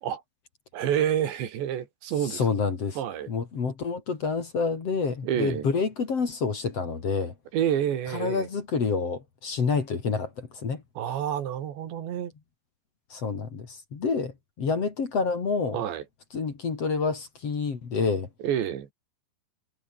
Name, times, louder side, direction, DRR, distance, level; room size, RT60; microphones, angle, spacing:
voice 1, 0.7-2.4 3.0-3.3 5.2-5.7 7.5-8.5 11.0-12.3 15.7-16.0 18.4-18.9, right 10 dB, 80° right, 4.7 m, -28 dB
voice 2, 2.3-3.0 3.3-7.3 8.1-10.8 13.1-15.8 16.3-18.3, left 5 dB, 40° left, 3.5 m, -28 dB
omnidirectional pair, 5.0 m